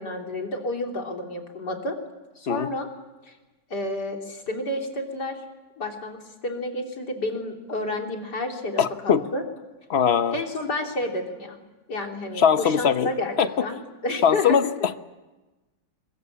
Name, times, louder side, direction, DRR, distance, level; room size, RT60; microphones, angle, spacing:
voice 1, 0.0-2.0 2.4-2.9 3.2-3.3 3.7-5.4 5.8-6.2 6.4-9.4 10.3-11.6 11.9-13.3 13.6-14.6, left 2 dB, 70° left, 2 dB, 3.8 m, -30 dB
voice 2, 8.8-9.3 9.9-10.4 12.4-13.1 13.4-13.5 14.2-15.0, left 7 dB, 45° left, 11 dB, 1.1 m, -21 dB
23.5 x 22.0 x 8.6 m, 1.1 s
omnidirectional pair, 1.9 m